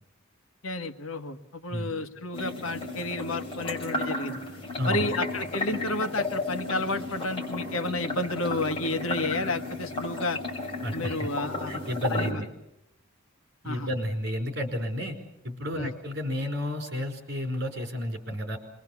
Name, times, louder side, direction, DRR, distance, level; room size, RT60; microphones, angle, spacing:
voice 1, 0.6-4.4 4.8-10.4 10.9-11.7 12.1-12.4 13.6-13.9 15.7-15.9, left 2 dB, 80° left, 7 dB, 1.5 m, -31 dB
sound 1, 2.3-12.3, left 2 dB, 25° left, 5.6 m, -33 dB
voice 2, 4.8-5.1 10.8-11.3 11.7-12.5 13.6-15.2 15.4-18.6, left 1 dB, 55° right, 5 dB, 4.8 m, -31 dB
26.5 x 22.5 x 7.2 m, 0.84 s
head